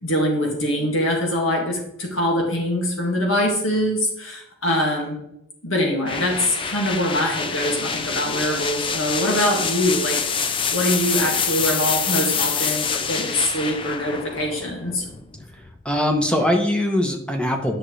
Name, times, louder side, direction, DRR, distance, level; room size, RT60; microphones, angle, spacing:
voice 1, 0.0-5.2 5.6-15.0, left 1 dB, 80° left, -1 dB, 2.1 m, -23 dB
sound 1, 6.1-15.8, left 6 dB, 25° left, 0.4 m, -26 dB
voice 2, 15.8-17.8, left 1 dB, 5° left, 3 dB, 0.9 m, -21 dB
10.5 x 6.1 x 3.3 m, 0.81 s
head